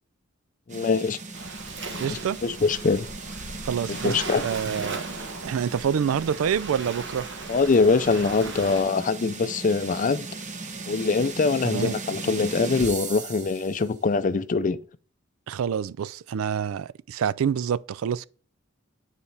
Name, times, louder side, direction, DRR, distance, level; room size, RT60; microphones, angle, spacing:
voice 1, 0.7-1.2 1.9-3.1 3.9-4.4 7.5-10.3 10.9-14.8, left 4 dB, 40° left, 0.4 m, -23 dB
sound 1, 0.7-13.9, right 3 dB, 35° right, 0.9 m, -38 dB
Waves surf, 1.3-8.8, right 3 dB, 65° right, 1.3 m, -38 dB
voice 2, 2.0-2.4 3.6-5.0 5.4-7.3 11.6-12.0 15.5-18.2, right 8 dB, 85° right, 0.3 m, -27 dB
9.5 x 4.2 x 3.4 m
head